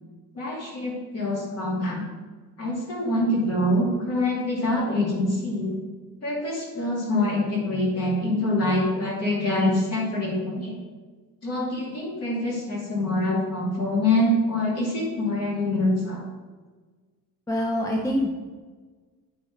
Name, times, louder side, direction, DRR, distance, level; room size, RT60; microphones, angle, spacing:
voice 1, 0.3-2.1 2.6-5.8 6.2-10.7 11.4-16.2, left 1 dB, 45° left, -3 dB, 2.5 m, -25 dB
voice 2, 17.5-18.3, left 1 dB, 10° left, 1 dB, 0.5 m, -25 dB
9.8 x 4.0 x 5.0 m, 1.4 s
cardioid pair, 170°, 36 cm